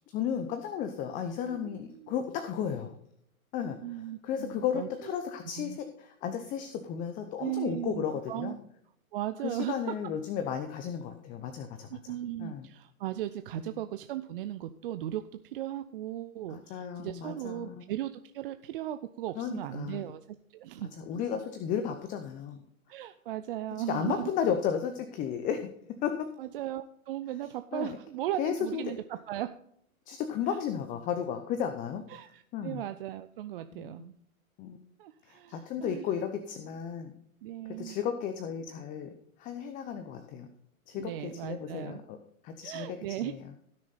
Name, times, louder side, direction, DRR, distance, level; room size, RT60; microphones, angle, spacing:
voice 1, 0.1-3.0 3.5-8.6 9.4-12.0 12.4-12.7 13.6-13.7 16.5-17.8 19.4-20.0 21.0-22.6 23.9-25.7 26.0-26.3 27.7-28.0 28.4-28.9 30.1-32.0 32.5-32.8 33.7-33.9 34.6-34.8 35.3-37.1 37.7-39.1 39.4-40.5 40.9-42.2 42.4-43.5, left 8 dB, 20° left, 8 dB, 0.7 m, -34 dB
voice 2, 1.5-2.1 3.8-5.1 5.6-5.8 7.4-8.6 9.1-10.0 11.9-20.2 20.5-20.9 22.9-24.3 26.4-29.5 30.5-30.6 32.1-34.1 35.0-36.1 37.4-38.0 40.9-42.0 42.6-43.3, right 13 dB, 40° right, 10 dB, 0.5 m, -37 dB
16.0 x 6.6 x 4.1 m, 0.70 s
hypercardioid pair, 135°, 42 cm